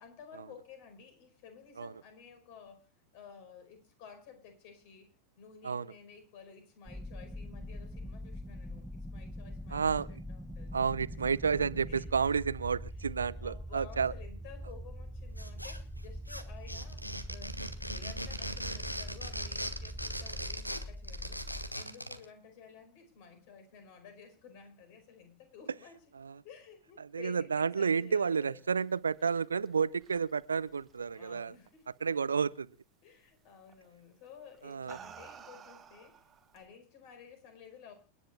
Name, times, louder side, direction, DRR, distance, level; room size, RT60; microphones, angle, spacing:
voice 1, 0.0-2.9 3.1-10.7 11.1-11.3 11.9-12.4 13.4-21.4 21.7-26.0 26.4-28.6 31.1-31.9 33.0-36.3 36.5-37.9, left 6 dB, 45° left, 5.0 m, -53 dB
sound 1, 6.9-21.7, equal, 5° right, 0.6 m, -43 dB
voice 2, 9.7-10.2 10.7-14.1 26.2-26.4 27.1-31.5 32.0-32.7 34.6-35.0, right 6 dB, 75° right, 0.6 m, -31 dB
sound 2, 15.4-16.0 16.3-22.2, equal, 90° left, 1.4 m, -39 dB
sound 3, 28.8-31.7 32.0-32.5 33.7-33.9 34.5-36.7, right 7 dB, 25° right, 1.6 m, -53 dB
29.0 x 10.5 x 2.3 m
figure-of-eight pair, 90°, 0 cm